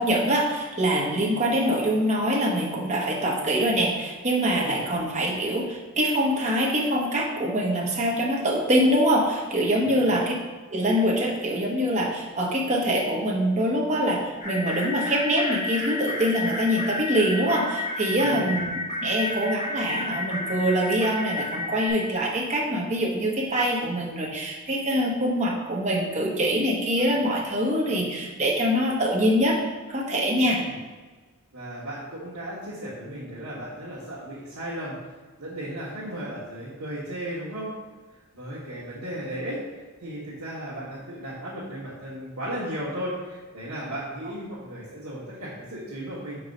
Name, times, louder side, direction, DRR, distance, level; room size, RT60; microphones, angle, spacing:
voice 1, 0.0-10.3 10.7-29.6 29.9-30.6, equal, 30° right, -2 dB, 1.1 m, -24 dB
voice 2, 9.8-10.2 18.2-18.5 30.4-30.8 31.5-34.9 35.4-37.7 38.3-39.6 40.0-46.4, right 1 dB, 80° right, -9 dB, 1.4 m, -35 dB
sound 1, 14.4-21.9, left 2 dB, 35° left, 1.6 m, -31 dB
4.6 x 4.6 x 5.3 m, 1.3 s
head